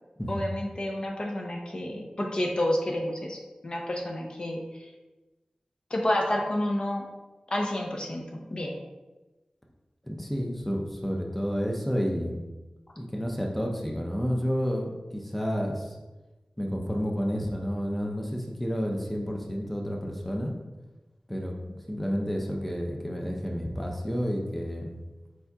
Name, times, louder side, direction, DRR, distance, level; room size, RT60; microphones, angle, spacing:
voice 1, 0.3-3.4 3.6-4.6 5.9-7.0 7.5-8.8, left 1 dB, 45° left, 0 dB, 0.7 m, -29 dB
voice 2, 10.0-12.4 13.0-16.0 16.6-20.5 21.3-25.0, equal, 5° left, 0 dB, 0.6 m, -30 dB
4.7 x 4.0 x 2.3 m, 1.1 s
wide cardioid pair, 65°, 2 cm